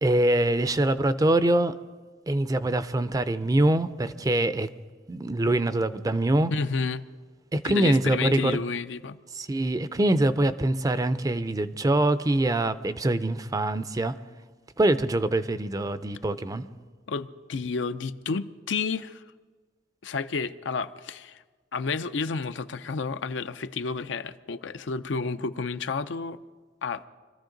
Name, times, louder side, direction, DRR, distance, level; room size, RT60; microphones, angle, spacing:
voice 1, 0.0-1.7 2.3-4.7 5.1-6.5 7.5-8.6 9.4-14.1 14.8-16.7, right 1 dB, 20° right, 0.5 m, -24 dB
voice 2, 6.5-7.0 7.6-9.2 17.1-19.2 20.0-21.4 21.7-26.4 26.8-27.0, left 4 dB, 75° left, 0.5 m, -31 dB
25.0 x 14.0 x 3.9 m
head